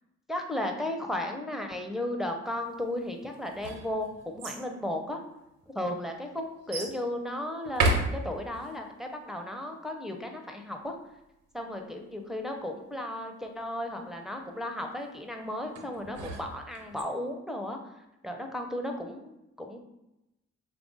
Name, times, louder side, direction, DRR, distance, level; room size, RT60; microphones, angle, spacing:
voice 1, 0.3-5.2 5.7-10.9 11.5-17.8 18.2-19.8, left 1 dB, ahead, 3 dB, 0.5 m, -35 dB
sound 1, 3.3-4.6 5.5-5.6 6.7-7.0 7.6-8.7 15.8-17.0, right 2 dB, 70° right, 0.6 m, -31 dB
3.4 x 2.4 x 3.8 m, 0.91 s
hypercardioid pair, 40°, 34 cm